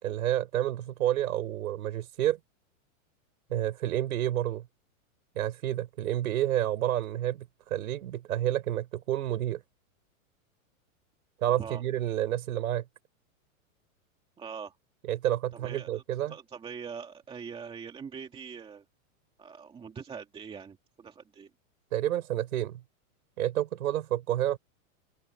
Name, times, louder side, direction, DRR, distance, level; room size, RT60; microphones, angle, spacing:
voice 1, 0.0-2.4 3.5-4.7 5.3-9.6 11.4-12.8 15.1-16.3 21.9-22.8 23.4-24.6, right 12 dB, 80° right, 4.9 m, -29 dB
voice 2, 14.4-14.8 15.6-16.0 16.3-18.8 19.4-21.5, right 6 dB, 10° right, 2.2 m, -42 dB
open air
supercardioid pair, 160°, 42 cm